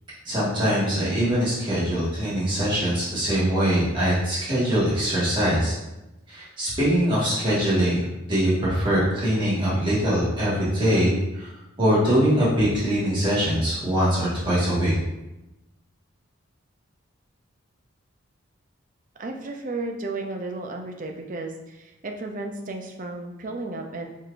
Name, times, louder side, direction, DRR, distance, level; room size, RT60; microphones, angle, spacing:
voice 1, 0.2-5.7 6.3-8.0 8.3-11.5 11.8-14.9, equal, 25° right, -9 dB, 1.6 m, -22 dB
voice 2, 19.2-24.1, right 2 dB, 40° right, 3 dB, 0.5 m, -33 dB
4.6 x 4.6 x 2.5 m, 0.97 s
head